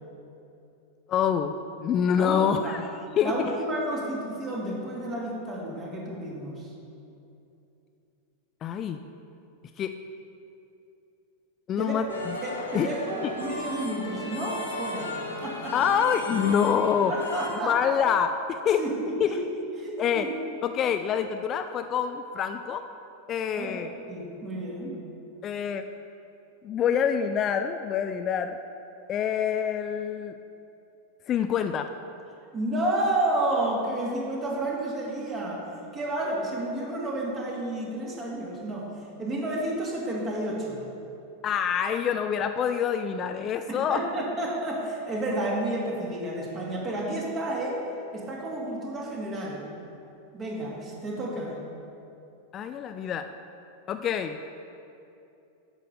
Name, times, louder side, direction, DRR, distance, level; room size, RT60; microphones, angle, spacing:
voice 1, 1.1-1.5 1.8-2.9 3.2-3.6 8.6-9.0 9.8-10.0 11.7-12.4 12.7-12.9 13.2-13.3 15.7-17.1 17.6-18.8 19.2-19.4 20.0-20.3 20.6-22.8 23.3-23.9 25.4-25.8 26.6-28.6 29.1-30.3 31.3-31.9 41.4-44.1 52.5-53.3 53.9-54.4, left 8 dB, 30° left, 8 dB, 0.4 m, -26 dB
voice 2, 2.2-2.7 3.2-6.7 11.8-12.0 12.4-15.7 17.1-18.0 18.8-19.4 19.8-20.3 23.6-23.8 24.1-25.0 32.5-35.7 35.9-38.9 39.2-40.8 43.9-47.8 48.1-49.6 50.3-51.6, right 1 dB, 25° right, -3 dB, 2.4 m, -31 dB
sound 1, 12.1-17.5, left 1 dB, 75° left, 1.7 m, -35 dB
11.0 x 5.4 x 6.6 m, 2.8 s
figure-of-eight pair, 90°, 0 cm